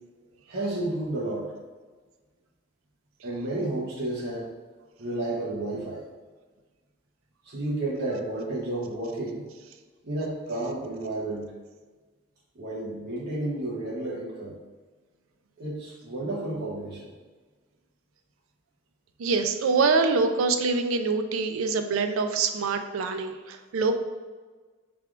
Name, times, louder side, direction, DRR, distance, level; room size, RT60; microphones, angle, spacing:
voice 1, 0.5-1.5 3.2-4.5 5.0-6.0 7.4-9.4 10.0-11.5 12.5-14.5 15.6-17.1, right 2 dB, 50° right, -7 dB, 0.8 m, -31 dB
voice 2, 19.2-24.0, right 4 dB, 85° right, 7 dB, 0.4 m, -25 dB
4.6 x 3.4 x 2.4 m, 1.4 s
head